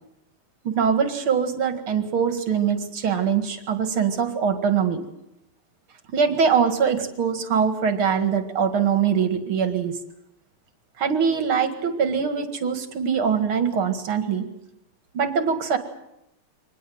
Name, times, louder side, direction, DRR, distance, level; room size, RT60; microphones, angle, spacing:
voice 1, 0.6-5.0 6.1-10.0 11.0-14.5 15.1-15.8, right 6 dB, 70° right, 7 dB, 2.8 m, -23 dB
24.5 x 19.5 x 7.8 m, 0.85 s
omnidirectional pair, 2.4 m